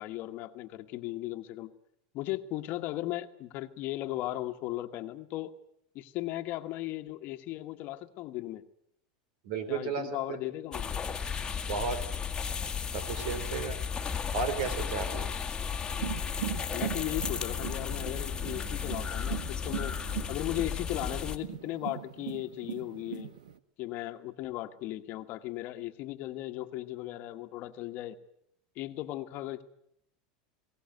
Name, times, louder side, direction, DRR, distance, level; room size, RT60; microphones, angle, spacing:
voice 1, 0.0-1.7 2.1-5.5 5.9-8.6 9.7-11.0 16.7-19.9 20.3-23.3 23.8-28.2 28.7-29.6, left 16 dB, 50° left, 8 dB, 1.5 m, -37 dB
voice 2, 9.5-10.4 11.6-12.0 12.9-13.8 14.3-15.3, right 5 dB, 70° right, 12 dB, 3.8 m, -33 dB
sound 1, 10.7-21.4, left 6 dB, 20° left, 1.8 m, -34 dB
sound 2, 15.9-23.6, right 11 dB, 85° right, 1.2 m, -40 dB
21.5 x 18.0 x 9.4 m, 0.74 s
supercardioid pair, 115°, 4 cm